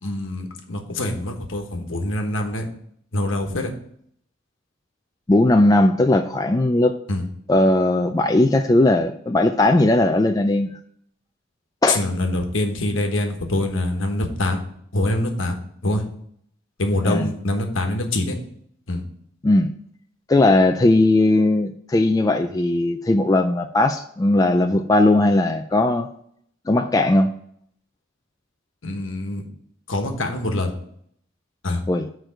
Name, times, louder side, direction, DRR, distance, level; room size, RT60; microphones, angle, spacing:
voice 1, 0.0-2.6 3.1-3.7 7.1-7.2 11.9-14.6 14.9-15.6 15.8-16.0 16.8-18.4 18.9-19.0 28.8-29.4 29.9-30.7 31.6-31.8, left 1 dB, 70° left, 4 dB, 1.2 m, -24 dB
voice 2, 5.3-7.0 7.5-10.7 11.8-12.0 17.0-17.3 19.4-19.7 20.3-26.1 26.7-27.3 31.9-32.1, left 2 dB, 15° left, 5 dB, 0.3 m, -18 dB
6.7 x 4.6 x 6.3 m, 0.66 s
head